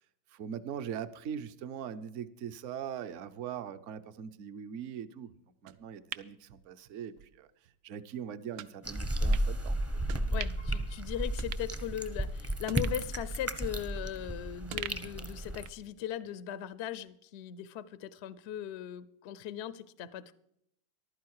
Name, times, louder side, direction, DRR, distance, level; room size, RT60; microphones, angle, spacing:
voice 1, 0.3-7.5 7.8-9.8, right 8 dB, 60° right, 0.8 m, -41 dB
sound 1, 5.7-7.3 7.7-7.8 8.6-8.7 9.3-9.5 10.1-10.7 11.0-11.1 11.4-12.3 12.7-14.3 14.7-15.9 16.2-16.3, right 12 dB, 80° right, 1.4 m, -44 dB
sound 2, 8.8-15.7, right 1 dB, 15° right, 0.5 m, -33 dB
voice 2, 10.3-20.3, left 10 dB, 75° left, 0.6 m, -39 dB
14.5 x 12.0 x 4.7 m
omnidirectional pair, 2.1 m